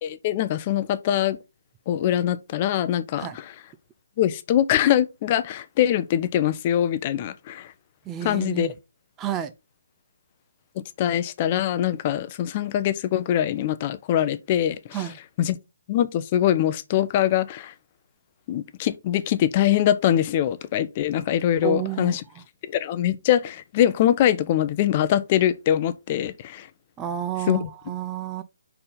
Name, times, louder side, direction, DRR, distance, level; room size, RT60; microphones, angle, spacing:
voice 1, 0.0-1.4 1.9-3.4 4.2-7.7 8.2-8.7 11.0-14.8 15.4-15.6 15.9-17.7 18.5-22.2 22.7-26.7 27.5-27.6, left 11 dB, 30° left, 0.6 m, -23 dB
voice 2, 8.1-8.7 9.2-9.5 14.9-15.2 21.6-22.4 27.0-28.4, right 11 dB, 15° right, 0.5 m, -31 dB
5.6 x 4.4 x 5.0 m
figure-of-eight pair, 145°, 0 cm